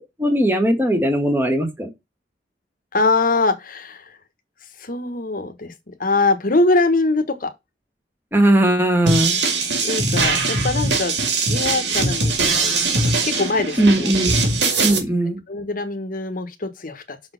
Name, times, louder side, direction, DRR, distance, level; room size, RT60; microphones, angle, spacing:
voice 1, 0.2-1.9 8.3-9.4 13.8-14.3 14.8-15.4, right 1 dB, 15° right, 1.7 m, -18 dB
voice 2, 2.9-4.1 4.8-5.7 6.0-7.5 9.8-11.1 11.5-12.8 13.2-14.1 14.6-15.0 15.5-17.2, left 3 dB, 55° left, 1.3 m, -22 dB
sound 1, 9.1-15.0, right 3 dB, 80° right, 2.2 m, -21 dB
6.3 x 4.2 x 5.8 m
head